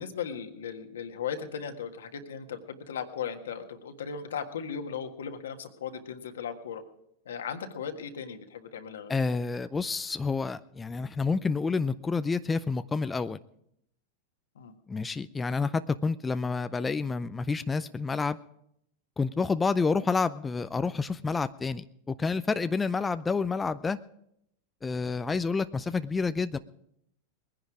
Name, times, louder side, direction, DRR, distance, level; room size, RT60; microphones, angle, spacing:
voice 1, 0.0-6.8 7.2-9.3 14.5-14.7, left 7 dB, 80° left, 6 dB, 1.6 m, -37 dB
voice 2, 9.1-13.4 14.9-18.4 19.2-24.0 24.8-26.6, left 4 dB, 15° left, 12 dB, 0.5 m, -29 dB
20.5 x 10.5 x 4.9 m, 0.76 s
hypercardioid pair, 105°, 0 cm